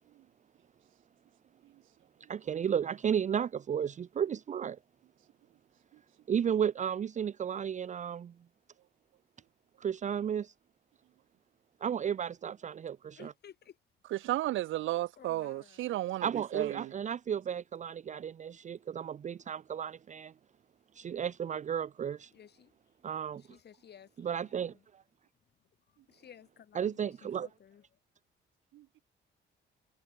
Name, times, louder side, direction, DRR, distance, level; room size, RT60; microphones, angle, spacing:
voice 1, 2.3-4.8 6.3-8.3 9.8-10.5 11.8-13.3 16.2-20.3 20.9-22.3 23.0-23.4 24.2-25.0 26.7-27.5, right 8 dB, 40° right, 0.5 m, -33 dB
voice 2, 13.2-13.8 15.2-15.9 22.3-22.7 23.3-24.8 25.9-28.0, left 9 dB, 55° left, 2.7 m, -56 dB
voice 3, 14.1-16.3 16.5-16.9 28.7-28.8, right 15 dB, 80° right, 0.7 m, -33 dB
cardioid pair, 90°, 20 cm